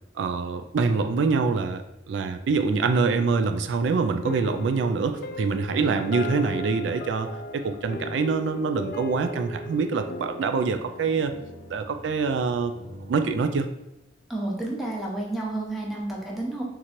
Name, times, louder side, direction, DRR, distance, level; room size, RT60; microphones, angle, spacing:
voice 1, 0.2-7.3 7.5-11.3 11.7-12.7 13.1-13.7, right 4 dB, 80° right, 8 dB, 0.3 m, -25 dB
sound 1, 4.2-12.8, left 2 dB, 55° left, 0.3 m, -38 dB
sound 2, 5.8-13.2, left 1 dB, 60° right, 0.7 m, -46 dB
voice 2, 14.3-16.6, right 2 dB, ahead, -3 dB, 0.9 m, -30 dB
3.8 x 3.0 x 4.3 m, 0.89 s
head